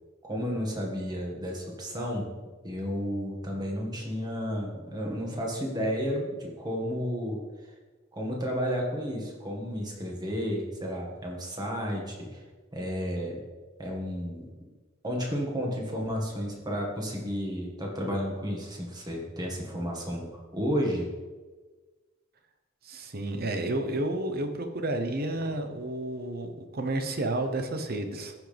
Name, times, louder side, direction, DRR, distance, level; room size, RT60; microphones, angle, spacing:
voice 1, 0.2-2.3 2.6-7.4 8.1-12.4 12.7-13.4 13.8-14.5 15.0-21.1, equal, 20° right, -1 dB, 1.8 m, -32 dB
voice 2, 22.8-28.3, right 1 dB, 50° right, 6 dB, 1.0 m, -31 dB
14.5 x 6.1 x 3.5 m, 1.3 s
head